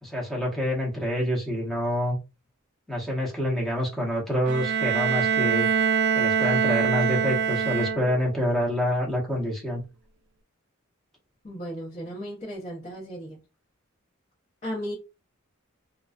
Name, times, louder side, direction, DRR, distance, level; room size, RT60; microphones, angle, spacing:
voice 1, 0.0-2.2 2.9-5.7 6.1-9.8, equal, ahead, 0.8 m, -27 dB
Bowed string instrument, 4.5-8.4, right 7 dB, 55° right, 0.3 m, -24 dB
voice 2, 11.4-13.4 14.6-14.9, equal, 35° left, 0.9 m, -35 dB
2.3 x 2.2 x 2.4 m
head